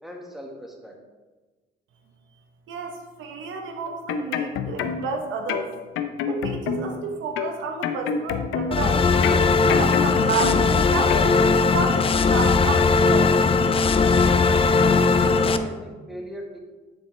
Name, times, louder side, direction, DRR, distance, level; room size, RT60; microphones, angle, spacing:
voice 1, 0.0-0.9 14.8-16.6, equal, ahead, 0 dB, 1.3 m, -39 dB
voice 2, 2.7-5.7 6.3-9.0 9.4-13.3, right 4 dB, 80° right, 4 dB, 0.9 m, -31 dB
sound 1, 3.9-5.2 5.5-7.0 7.4-8.9 9.2-10.8 11.1-11.3, left 7 dB, 90° left, 0.5 m, -28 dB
sound 2, 8.7-15.6, left 4 dB, 30° left, 0.4 m, -19 dB
9.4 x 4.3 x 3.1 m, 1.2 s
cardioid pair, 90°, 20 cm